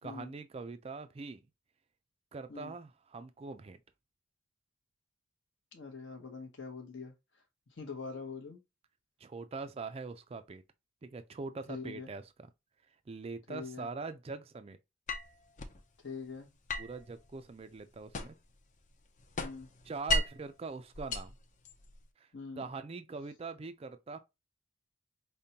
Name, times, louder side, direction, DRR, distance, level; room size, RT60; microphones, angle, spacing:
voice 1, 0.0-1.4 2.3-3.8 9.2-10.6 11.0-12.5 13.1-14.8 16.8-18.4 19.8-21.4 22.2-22.3 22.6-24.2, right 4 dB, 30° right, 0.3 m, -43 dB
voice 2, 5.7-7.1 7.7-8.6 11.7-12.1 13.5-13.9 16.0-16.5 19.4-19.7 22.3-22.7, left 4 dB, 60° left, 0.8 m, -43 dB
sound 1, 15.1-15.8 16.7-18.6 18.9-20.5 20.9-22.0, left 2 dB, 35° left, 0.5 m, -36 dB
5.1 x 2.1 x 2.8 m
head